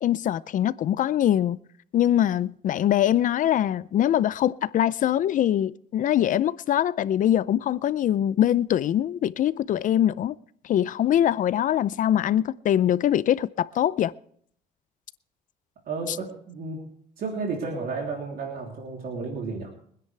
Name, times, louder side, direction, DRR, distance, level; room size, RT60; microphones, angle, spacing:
voice 1, 0.0-1.6 1.9-10.3 10.6-14.1 16.1-16.2, left 11 dB, 50° left, 0.5 m, -23 dB
voice 2, 15.8-16.8 17.2-19.7, right 4 dB, 60° right, 3.3 m, -32 dB
24.5 x 10.0 x 3.3 m
cardioid pair, 110°, 17 cm